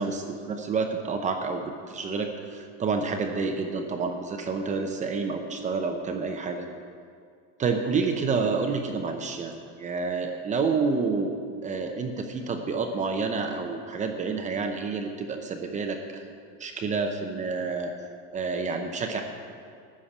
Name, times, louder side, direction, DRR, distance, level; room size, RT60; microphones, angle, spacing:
voice 1, 0.0-6.7 7.6-11.4 11.6-16.2 16.6-17.9 18.3-19.2, right 4 dB, 20° right, 4 dB, 0.8 m, -29 dB
13.0 x 6.5 x 8.5 m, 2.2 s
supercardioid pair, 155°, 34 cm